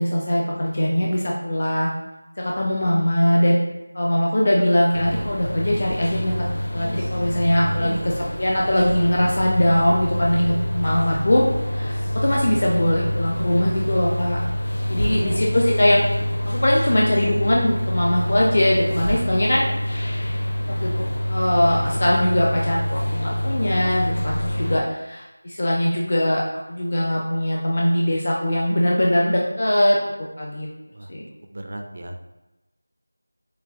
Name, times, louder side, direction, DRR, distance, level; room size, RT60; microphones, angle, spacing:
voice 1, 0.0-1.9 2.4-3.6 3.9-6.5 6.7-11.4 11.7-14.4 14.9-16.0 16.5-19.6 20.7-26.4 26.7-30.7 31.1-31.3, left 1 dB, 35° left, -3 dB, 0.5 m, -21 dB
sound 1, 4.9-24.8, left 1 dB, 55° left, 1.1 m, -26 dB
voice 2, 7.6-8.0 15.0-15.3 24.6-24.8 30.9-31.1 31.5-32.2, right 1 dB, 35° right, 4 dB, 0.3 m, -34 dB
6.5 x 2.3 x 2.8 m, 1.0 s
figure-of-eight pair, 180°, 0 cm